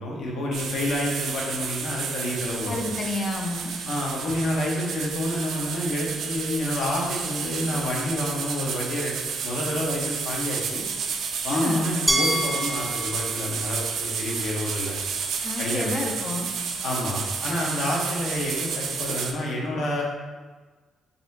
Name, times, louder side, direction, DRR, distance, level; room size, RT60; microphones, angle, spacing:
voice 1, 0.0-2.8 3.9-9.2 9.4-10.8 11.4-14.9 15.6-16.0 16.8-20.0, left 1 dB, 70° left, -2 dB, 1.0 m, -29 dB
sound 1, 0.5-19.3, right 6 dB, 75° right, 0.4 m, -31 dB
voice 2, 2.7-3.7 11.5-11.9 15.4-16.5, left 2 dB, 45° left, 1 dB, 0.5 m, -29 dB
Glass, 12.1-15.0, right 1 dB, 5° right, 0.4 m, -29 dB
4.0 x 3.6 x 2.7 m, 1.4 s
cardioid pair, 90°, 0 cm